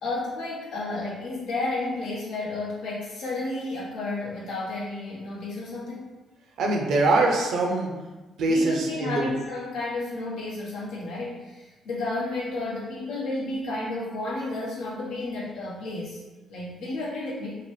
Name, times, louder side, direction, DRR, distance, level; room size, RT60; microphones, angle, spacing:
voice 1, 0.0-6.1 8.5-16.2 16.5-17.6, left 2 dB, 85° left, -6 dB, 0.9 m, -32 dB
voice 2, 6.6-7.9 8.4-9.3, right 2 dB, 75° right, 0 dB, 0.5 m, -23 dB
2.8 x 2.1 x 3.1 m, 1.2 s
cardioid pair, 90°, 0 cm